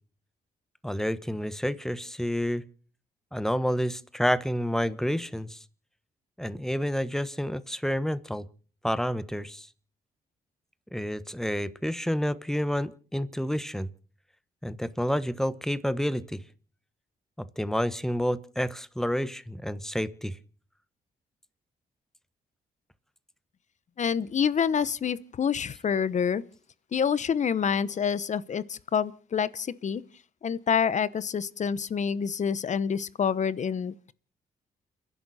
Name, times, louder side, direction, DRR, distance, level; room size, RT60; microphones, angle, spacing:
voice 1, 0.8-2.6 3.3-5.6 6.4-8.4 8.8-9.7 10.9-13.9 14.6-16.4 17.4-20.4, equal, 5° left, 1.2 m, -29 dB
voice 2, 24.0-26.4 26.9-30.0 30.4-34.1, left 7 dB, 50° left, 0.9 m, -27 dB
30.0 x 11.0 x 4.2 m
cardioid pair, 75°, 16 cm